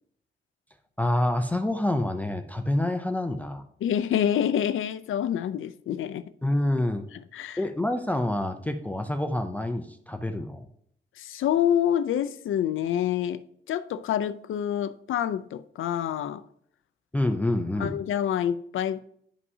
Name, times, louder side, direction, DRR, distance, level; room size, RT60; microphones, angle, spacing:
voice 1, 1.0-3.6 6.4-7.1 7.6-10.7 17.1-18.0, left 1 dB, 10° left, 0.4 m, -27 dB
voice 2, 3.8-6.3 7.1-7.6 11.2-13.4 13.7-16.4 17.8-19.0, left 10 dB, 80° left, 0.4 m, -27 dB
11.0 x 5.5 x 2.7 m
wide cardioid pair, 175°, 20 cm